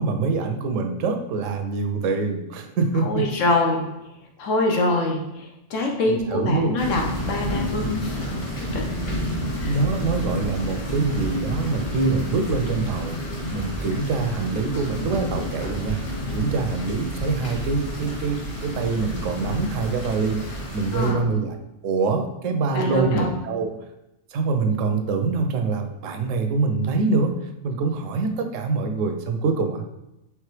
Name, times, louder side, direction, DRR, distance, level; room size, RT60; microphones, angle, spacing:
voice 1, 0.0-3.3 6.0-6.8 9.6-13.2 13.5-16.0 16.3-23.8 24.3-27.3 27.6-29.8, right 4 dB, 80° right, 6 dB, 0.9 m, -25 dB
voice 2, 3.0-3.8 4.4-5.2 5.7-8.2 8.7-8.9 9.6-9.7 20.9-21.2 22.7-23.3, left 2 dB, 80° left, 1 dB, 1.2 m, -24 dB
sound 1, 6.8-21.1, equal, 35° left, 0.6 m, -30 dB
4.6 x 3.3 x 3.2 m, 0.92 s
omnidirectional pair, 1.3 m